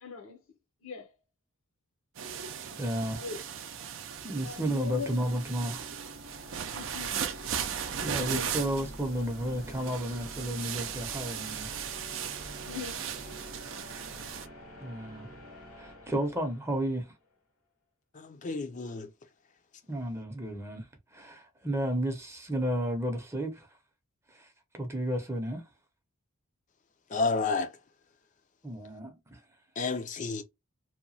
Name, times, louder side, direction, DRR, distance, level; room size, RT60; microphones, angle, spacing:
voice 1, 0.0-0.4 0.8-1.1 3.1-3.4 4.4-5.2 6.7-7.3 8.2-8.5 12.7-13.4, left 6 dB, 70° left, 0.7 m, -41 dB
sound 1, 2.2-14.5, right 8 dB, 60° right, 0.4 m, -37 dB
voice 2, 2.8-3.2 4.2-5.9 8.0-11.7 14.8-15.3 15.8-17.1 19.9-20.8 21.1-23.7 24.3-24.5 24.7-25.6 28.6-29.4, right 1 dB, 10° right, 0.6 m, -32 dB
sound 2, 4.2-17.1, equal, 85° left, 1.4 m, -48 dB
voice 3, 18.1-19.1 27.1-27.7 29.8-30.4, left 4 dB, 35° left, 0.4 m, -30 dB
2.8 x 2.2 x 2.6 m
head